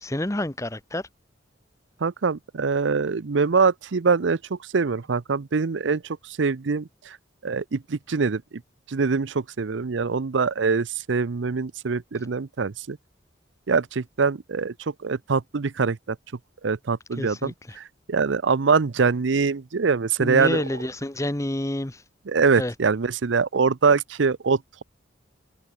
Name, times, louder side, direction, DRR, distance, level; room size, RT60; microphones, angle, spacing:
voice 1, 0.0-1.0 17.2-17.5 20.2-22.0 22.6-22.7, left 1 dB, 15° left, 0.9 m, -28 dB
voice 2, 2.0-7.2 7.4-8.6 8.9-13.0 13.7-16.2 16.6-20.6 22.3-24.8, right 5 dB, 75° right, 0.6 m, -24 dB
head